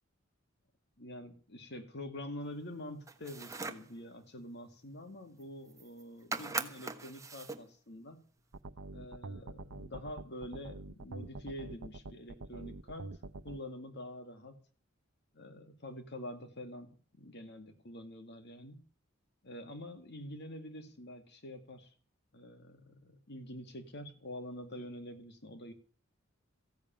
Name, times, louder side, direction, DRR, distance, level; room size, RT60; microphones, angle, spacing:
voice 1, 1.0-8.2 8.9-13.2 13.4-14.6 15.3-16.9 17.2-18.8 19.4-21.9 22.3-25.7, left 1 dB, 55° left, 7 dB, 2.1 m, -46 dB
sound 1, 3.1-3.9 5.4-5.5 5.7-6.0 6.3-7.7, right 3 dB, 15° right, 1.2 m, -40 dB
sound 2, 8.5-13.6, right 3 dB, 85° right, 0.8 m, -45 dB
15.5 x 7.2 x 9.1 m, 0.42 s
head